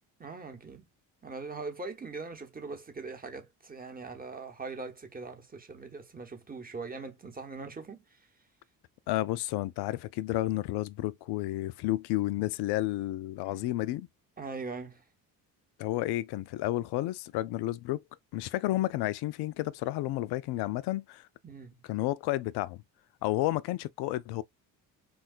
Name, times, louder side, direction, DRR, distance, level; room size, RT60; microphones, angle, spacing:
voice 1, 0.2-0.9 1.2-8.0 13.5-13.7 14.4-15.0 21.4-21.8, right 4 dB, 20° right, 0.9 m, -41 dB
voice 2, 9.1-14.1 15.8-18.0 18.3-21.2 21.9-22.8 23.2-24.4, left 16 dB, 55° left, 0.5 m, -31 dB
3.5 x 2.3 x 2.3 m
hypercardioid pair, 50°, 49 cm